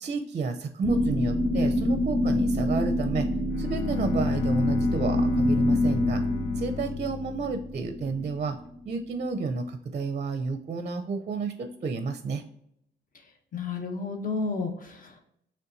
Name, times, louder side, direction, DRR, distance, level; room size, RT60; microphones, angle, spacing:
voice 1, 0.0-3.3 3.6-6.2 6.6-8.6 8.8-12.4, right 4 dB, 35° right, 8 dB, 0.5 m, -31 dB
sound 1, 0.8-8.8, left 1 dB, 20° left, 1.2 m, -26 dB
Bowed string instrument, 3.5-8.2, left 6 dB, 80° left, 0.5 m, -37 dB
voice 2, 13.5-15.2, left 4 dB, 45° left, 4 dB, 1.1 m, -31 dB
5.5 x 3.4 x 2.6 m, 0.73 s
cardioid pair, 90°, 20 cm